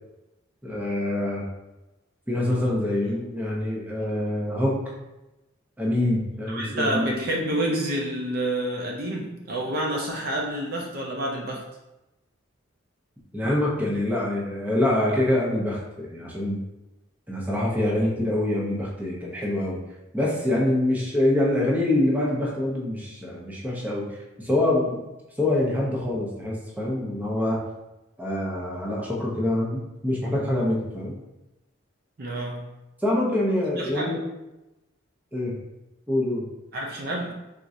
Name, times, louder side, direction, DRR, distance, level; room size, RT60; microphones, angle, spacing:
voice 1, 0.6-1.4 2.3-4.8 5.8-7.2 13.3-16.6 17.3-19.8 20.1-25.0 25.4-27.6 28.2-31.1 33.0-34.2 35.3-35.5 36.1-36.5, left 1 dB, 10° right, -4 dB, 0.7 m, -25 dB
voice 2, 6.5-11.6 32.2-32.8 33.7-34.2 36.7-37.3, right 1 dB, 50° right, -1 dB, 0.5 m, -28 dB
4.5 x 3.7 x 2.7 m, 1.0 s
head